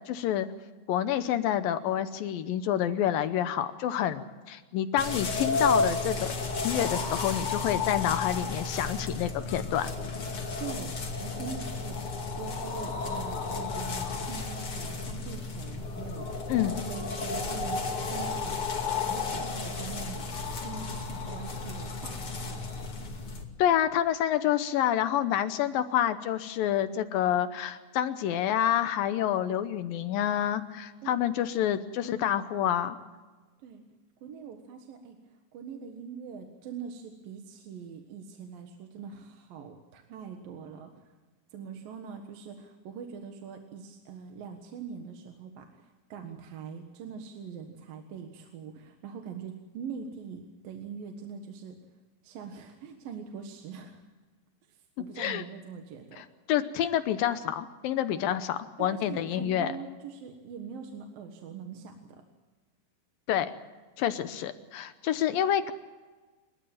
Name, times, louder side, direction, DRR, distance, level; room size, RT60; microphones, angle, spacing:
voice 1, 0.1-0.5 0.9-6.3 6.6-9.9 16.5-16.7 23.6-33.0 55.0-55.4 56.2-59.7 63.3-63.5 64.0-65.7, left 10 dB, 75° left, 11 dB, 2.5 m, -28 dB
sound 1, 5.0-23.4, left 4 dB, 40° left, 3.1 m, -33 dB
voice 2, 10.6-18.6 19.0-20.3 20.6-22.6 31.0-31.2 33.6-33.8 34.2-41.1 41.5-51.8 52.2-54.0 54.7-56.2 58.8-62.2, right 6 dB, 70° right, 4 dB, 3.1 m, -43 dB
29.0 x 13.5 x 9.0 m, 1.3 s
omnidirectional pair, 4.3 m